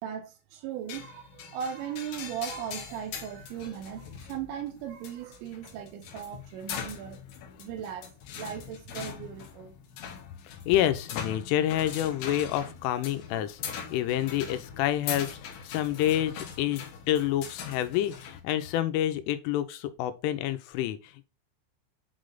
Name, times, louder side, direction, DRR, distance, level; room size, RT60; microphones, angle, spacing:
voice 1, 0.0-7.2 7.6-8.1 8.3-9.7, right 9 dB, 80° right, 3.0 m, -38 dB
sound 1, 0.9-18.4, left 7 dB, 75° left, 2.2 m, -41 dB
voice 2, 10.4-13.6 13.9-21.2, left 12 dB, 90° left, 3.2 m, -28 dB
8.2 x 3.2 x 3.8 m
omnidirectional pair, 5.5 m